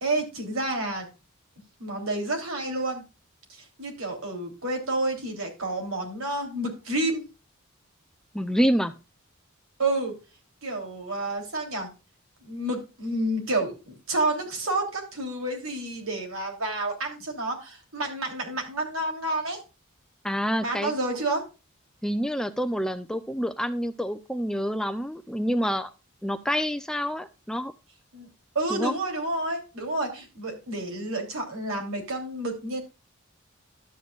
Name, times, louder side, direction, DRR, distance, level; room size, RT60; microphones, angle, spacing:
voice 1, 0.0-1.1 1.8-3.0 3.5-7.2 9.8-10.2 10.6-11.9 12.4-19.6 20.6-21.4 28.1-28.3 28.5-32.8, right 2 dB, 75° right, 3 dB, 3.2 m, -29 dB
voice 2, 8.3-8.9 20.2-20.9 22.0-25.9 26.2-27.7 28.7-28.9, equal, 5° left, 9 dB, 0.5 m, -27 dB
12.0 x 8.2 x 2.4 m, 0.29 s
head